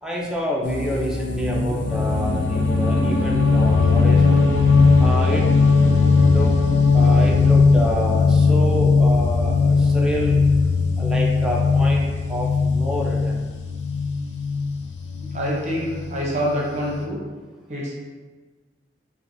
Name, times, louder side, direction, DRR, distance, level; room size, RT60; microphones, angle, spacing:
voice 1, 0.0-4.5 5.0-5.5 6.2-6.5 6.9-10.4 11.0-13.4, equal, 5° right, -4 dB, 0.5 m, -28 dB
sound 1, 0.6-17.0, left 4 dB, 65° left, 0.4 m, -19 dB
voice 2, 15.2-17.2 17.7-17.9, equal, 40° right, -4 dB, 0.8 m, -26 dB
4.4 x 2.3 x 2.6 m, 1.3 s
head